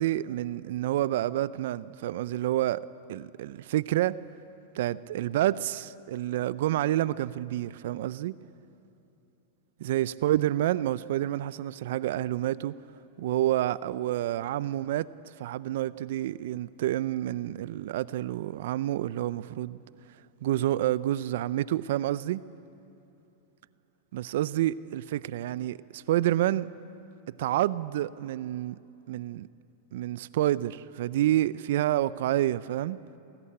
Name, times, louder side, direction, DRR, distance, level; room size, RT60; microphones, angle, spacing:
voice 1, 0.0-2.8 3.1-4.2 4.7-8.4 9.8-12.8 13.2-19.8 20.4-22.4 24.1-26.7 27.4-28.8 29.1-29.5 29.9-33.0, right 13 dB, 65° right, 0.6 m, -28 dB
28.5 x 20.5 x 8.8 m
hypercardioid pair, 100°, 0 cm